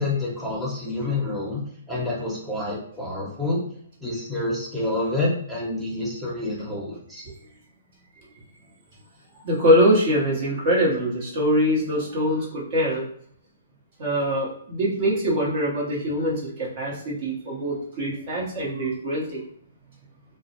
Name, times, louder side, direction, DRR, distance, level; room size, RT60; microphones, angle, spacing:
voice 1, 0.0-1.6 1.9-3.6 4.0-7.2, left 2 dB, ahead, -6 dB, 0.9 m, -28 dB
voice 2, 9.4-13.1 14.0-19.4, equal, 45° right, -4 dB, 0.9 m, -23 dB
2.3 x 2.0 x 2.8 m, 0.62 s
hypercardioid pair, 140°, 0 cm